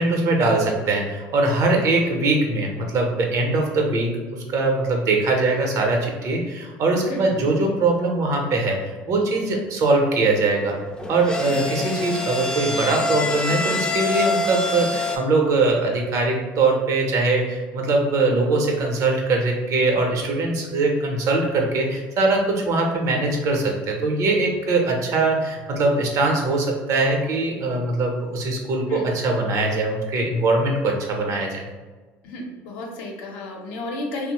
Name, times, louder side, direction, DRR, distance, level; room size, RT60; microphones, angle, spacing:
voice 1, 0.0-10.7 11.1-31.6, right 3 dB, 55° right, 1 dB, 0.7 m, -22 dB
voice 2, 7.1-7.4 11.5-11.6 28.9-29.1 32.2-34.3, left 1 dB, 80° left, 0 dB, 0.7 m, -32 dB
sound 1, 10.9-15.2, left 3 dB, 15° left, 0.4 m, -26 dB
2.9 x 2.0 x 2.9 m, 1.3 s
supercardioid pair, 95°, 6 cm